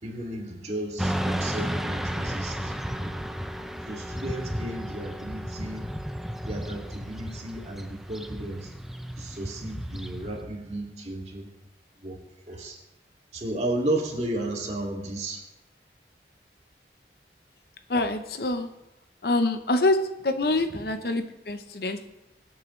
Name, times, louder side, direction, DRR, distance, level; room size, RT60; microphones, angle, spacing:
voice 1, 0.0-2.7 3.0-3.1 3.9-5.9 6.5-8.7 9.2-11.5 12.0-12.2 12.5-12.8 13.3-15.4, right 1 dB, 40° right, -1 dB, 2.3 m, -33 dB
Motorcycle / Traffic noise roadway noise, 1.0-10.4, equal, ahead, 0.5 m, -33 dB
voice 2, 17.9-18.7 19.2-20.0 20.2-22.1, left 2 dB, 60° left, 8 dB, 0.8 m, -25 dB
23.5 x 8.3 x 3.2 m, 0.91 s
head